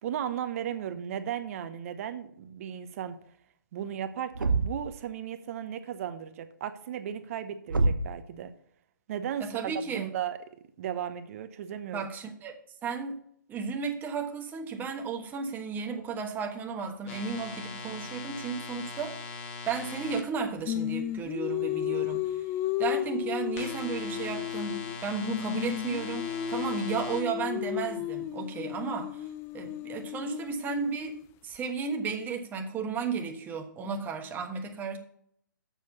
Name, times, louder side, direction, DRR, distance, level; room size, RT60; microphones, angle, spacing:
voice 1, 0.0-3.2 3.7-8.5 9.1-10.4 10.8-12.1, right 9 dB, 45° right, 1.0 m, -35 dB
Thump thud, 4.3-5.0 7.7-8.2, right 3 dB, 85° right, 0.6 m, -26 dB
voice 2, 9.4-10.1 11.9-12.6 12.8-13.2 13.5-19.3 19.7-22.4 22.8-29.2 29.5-31.2 31.4-35.0, right 5 dB, 15° right, 1.3 m, -34 dB
sound 1, 17.1-20.2 23.6-27.2, left 4 dB, 40° left, 1.7 m, -41 dB
Singing, 20.7-25.0 25.2-31.2, left 13 dB, 25° left, 0.5 m, -33 dB
7.4 x 6.3 x 7.1 m
figure-of-eight pair, 125°, 11 cm